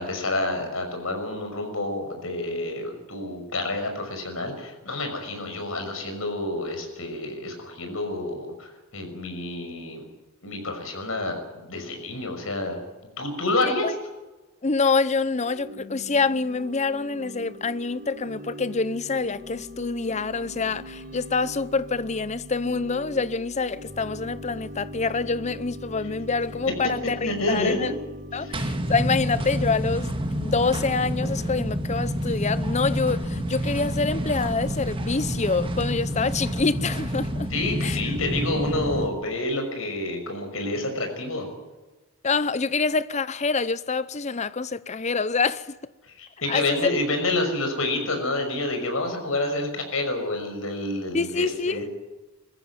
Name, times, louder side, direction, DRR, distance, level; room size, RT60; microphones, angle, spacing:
voice 1, 0.0-10.0 10.4-12.8 13.2-13.9 27.2-27.9 28.3-28.5 37.5-41.5 46.1-51.8, left 2 dB, 70° left, 5.9 m, -28 dB
voice 2, 14.6-27.9 28.3-37.5 37.8-38.0 42.2-45.8 46.5-46.9 51.1-51.8, left 4 dB, 35° left, 0.7 m, -26 dB
Organ / Church bell, 15.4-29.5, equal, 45° right, 6.7 m, -41 dB
sound 1, 28.5-39.1, equal, 25° right, 1.8 m, -28 dB
21.5 x 15.0 x 9.7 m
head